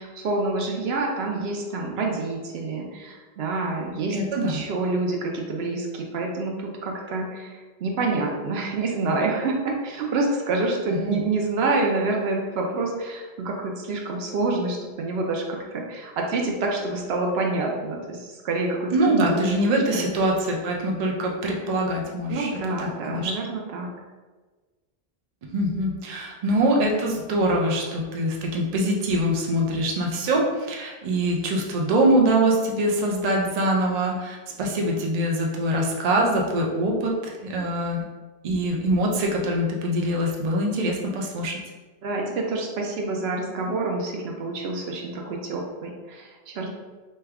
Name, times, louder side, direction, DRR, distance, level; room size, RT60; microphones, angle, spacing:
voice 1, 0.0-4.2 4.4-20.1 22.3-23.9 42.0-46.7, right 3 dB, 80° right, 1 dB, 0.8 m, -27 dB
voice 2, 4.1-4.6 10.9-11.2 18.9-23.3 25.5-38.0 38.4-41.6, right 1 dB, 50° right, -1 dB, 0.5 m, -24 dB
3.1 x 2.3 x 3.4 m, 1.3 s
omnidirectional pair, 1.0 m